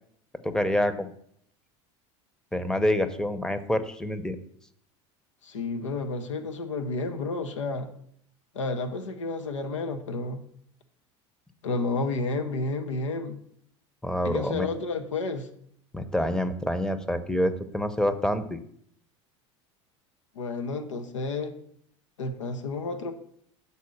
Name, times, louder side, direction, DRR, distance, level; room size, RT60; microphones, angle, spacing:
voice 1, 0.4-1.1 2.5-4.4 14.0-14.7 15.9-18.6, left 1 dB, 5° left, 10 dB, 0.7 m, -27 dB
voice 2, 5.4-7.9 8.5-10.4 11.6-13.4 14.2-15.5 20.4-21.5 22.2-23.1, left 3 dB, 90° left, 7 dB, 0.8 m, -31 dB
6.9 x 4.1 x 6.4 m, 0.65 s
hypercardioid pair, 80°, 16 cm